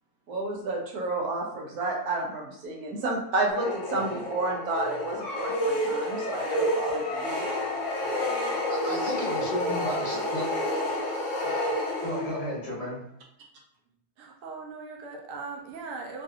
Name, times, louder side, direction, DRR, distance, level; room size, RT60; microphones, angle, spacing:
voice 1, 0.3-7.4, right 2 dB, 80° right, 0 dB, 1.2 m, -30 dB
sound 1, 3.5-12.6, left 1 dB, 60° left, 1.2 m, -29 dB
voice 2, 8.7-10.5 11.4-11.5 12.0-13.0, equal, 30° left, -5 dB, 0.9 m, -33 dB
voice 3, 14.2-16.2, right 4 dB, 65° right, 1 dB, 1.0 m, -39 dB
3.1 x 2.7 x 2.5 m, 0.72 s
omnidirectional pair, 1.6 m